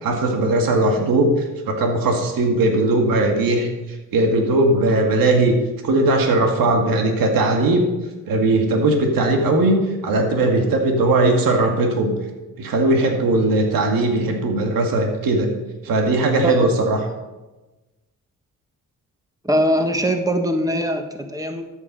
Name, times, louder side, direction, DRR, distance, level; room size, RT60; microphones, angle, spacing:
voice 1, 0.0-3.7 4.1-5.5 5.8-7.9 8.3-9.8 10.0-12.1 12.6-15.5 15.8-17.0, right 2 dB, 80° right, 3 dB, 1.9 m, -18 dB
voice 2, 19.4-21.7, equal, 10° right, 5 dB, 1.6 m, -21 dB
13.0 x 8.3 x 5.4 m, 1.1 s
supercardioid pair, 55°, 34 cm